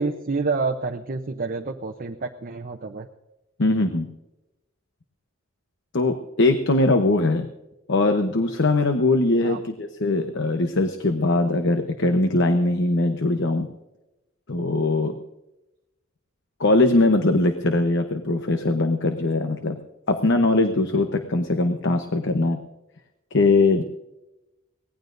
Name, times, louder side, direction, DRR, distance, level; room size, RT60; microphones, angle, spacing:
voice 1, 0.0-3.1 9.4-9.6, right 4 dB, 45° right, 3 dB, 0.7 m, -28 dB
voice 2, 3.6-4.1 5.9-7.5 7.9-13.7 14.5-15.2 16.6-19.8 20.1-22.6 23.3-23.8, left 2 dB, 60° left, 6 dB, 0.9 m, -21 dB
24.0 x 18.0 x 2.6 m, 0.96 s
head